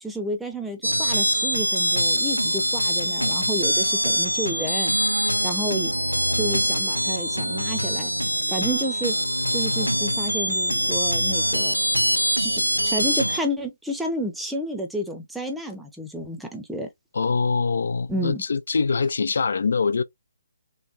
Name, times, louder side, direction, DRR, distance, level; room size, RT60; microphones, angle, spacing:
voice 1, 0.0-4.9 5.4-5.9 6.3-8.1 8.5-9.2 9.5-11.8 12.4-16.9 18.1-18.4, right 1 dB, 5° right, 0.6 m, -31 dB
sound 1, 0.8-13.4, equal, 90° right, 0.4 m, -23 dB
voice 2, 17.1-20.0, left 4 dB, 55° left, 0.3 m, -23 dB
3.3 x 3.2 x 2.4 m
figure-of-eight pair, 135°, 0 cm